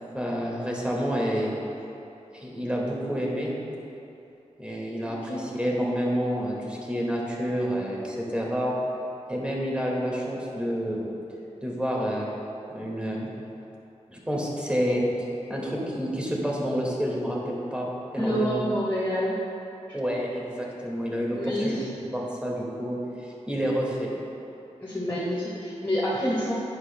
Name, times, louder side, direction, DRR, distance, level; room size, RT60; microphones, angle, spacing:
voice 1, 0.1-1.5 2.3-3.5 4.6-8.7 9.3-11.1 11.6-12.3 12.7-13.3 14.1-15.1 15.5-17.9 18.1-18.6 19.9-21.8 22.1-24.1, equal, 10° right, -4 dB, 1.9 m, -29 dB
voice 2, 5.1-5.4 18.2-19.4 21.3-21.9 24.8-26.5, equal, 20° left, -9 dB, 1.7 m, -28 dB
11.0 x 8.6 x 2.2 m, 2.9 s
cardioid pair, 60°, 13 cm